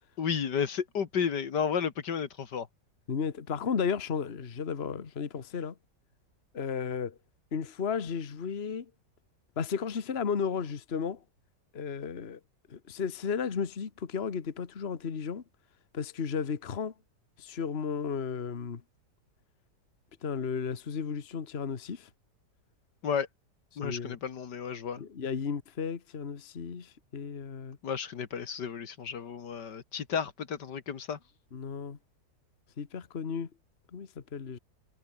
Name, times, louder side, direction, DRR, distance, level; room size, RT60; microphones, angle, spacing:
voice 1, 0.2-2.7 23.0-23.3 23.8-25.0 27.8-31.2, left 7 dB, 70° left, 2.2 m, -32 dB
voice 2, 3.1-5.7 6.5-7.1 7.5-8.8 9.6-11.2 11.7-12.4 12.7-15.4 15.9-16.9 17.4-18.8 20.2-22.1 23.8-24.2 25.0-27.8 31.5-32.0 32.8-33.5 33.9-34.6, left 6 dB, 35° left, 1.5 m, -34 dB
omnidirectional pair, 1.9 m